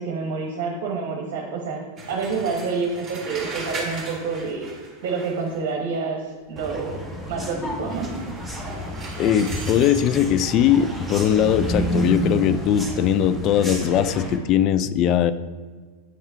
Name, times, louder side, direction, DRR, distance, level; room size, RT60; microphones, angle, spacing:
voice 1, 0.0-4.7 5.0-8.1, right 4 dB, 50° right, 1 dB, 1.0 m, -28 dB
sound 1, 2.0-5.7 7.9-10.1, right 2 dB, 15° right, 1.6 m, -37 dB
sound 2, 6.6-14.4, equal, ahead, 1.1 m, -29 dB
voice 2, 9.2-15.3, left 9 dB, 35° left, 13 dB, 0.3 m, -20 dB
8.0 x 5.5 x 4.6 m, 1.5 s
figure-of-eight pair, 90°, 0 cm